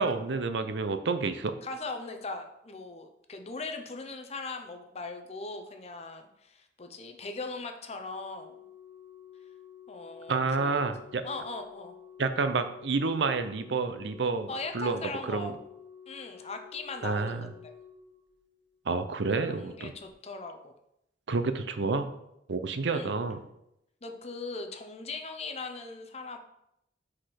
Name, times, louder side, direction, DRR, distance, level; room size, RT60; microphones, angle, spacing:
voice 1, 0.0-1.5 10.3-11.2 12.2-15.5 17.0-17.5 18.9-19.9 21.3-22.1 22.5-23.4, right 4 dB, 70° right, 9 dB, 0.6 m, -29 dB
voice 2, 1.6-8.5 9.9-10.9 11.2-11.9 14.5-15.5 16.1-17.7 19.4-20.7 22.9-23.1 24.0-26.4, left 3 dB, 35° left, 6 dB, 0.7 m, -39 dB
Organ, 7.9-18.8 19.9-20.1, left 8 dB, 90° left, 1.0 m, -51 dB
5.1 x 4.2 x 5.8 m, 0.81 s
head